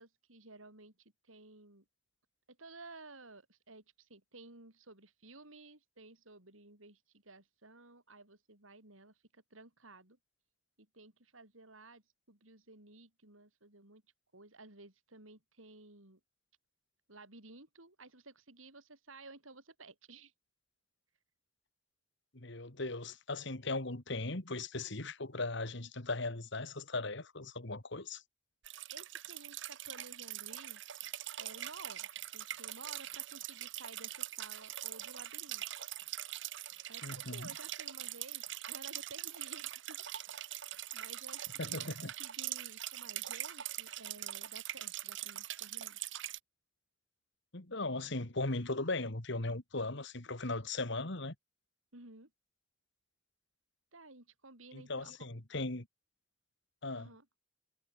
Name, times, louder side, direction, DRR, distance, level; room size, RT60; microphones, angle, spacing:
voice 1, 0.0-1.8 2.5-10.2 10.8-14.0 14.3-16.2 17.1-20.3 28.9-30.8 31.4-35.6 36.9-40.0 40.9-46.0 51.9-52.3 53.9-55.3 56.9-57.3, right 3 dB, 90° right, 7.1 m, -55 dB
voice 2, 22.3-28.2 37.0-37.5 41.6-42.1 47.5-51.3 54.7-55.9 56.8-57.1, left 2 dB, 60° left, 2.5 m, -38 dB
sound 1, 28.6-46.4, right 13 dB, 65° right, 1.2 m, -43 dB
head